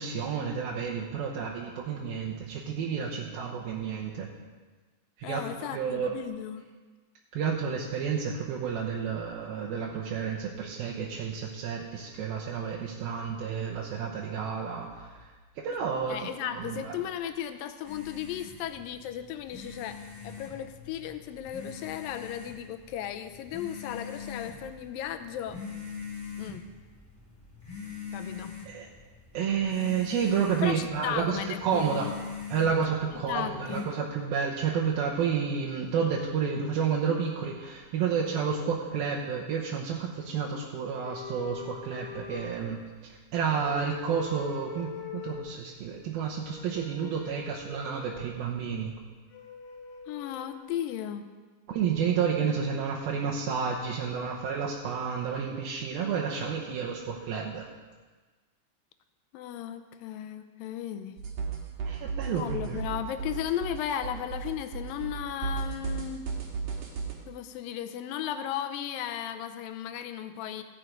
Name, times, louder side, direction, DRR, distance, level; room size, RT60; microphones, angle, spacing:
voice 1, 0.0-4.3 5.2-6.2 7.3-15.2 15.6-17.0 28.7-28.9 29.3-32.1 32.5-48.9 51.7-57.7 61.8-62.9, right 6 dB, 75° right, -2 dB, 2.7 m, -30 dB
voice 2, 5.2-6.7 16.1-20.0 20.2-25.6 26.4-26.6 28.1-28.5 30.6-32.1 33.3-33.9 50.1-51.3 59.3-61.2 62.3-66.3 67.3-70.6, left 10 dB, 80° left, 8 dB, 2.2 m, -35 dB
sound 1, 17.8-33.8, left 5 dB, 5° left, 2.2 m, -43 dB
sound 2, 41.0-43.1 43.5-45.5 46.4-48.3 49.3-50.6, left 7 dB, 55° left, 2.6 m, -43 dB
sound 3, 61.2-67.1, right 5 dB, 60° right, 2.8 m, -34 dB
14.5 x 9.4 x 5.2 m, 1.4 s
omnidirectional pair, 4.5 m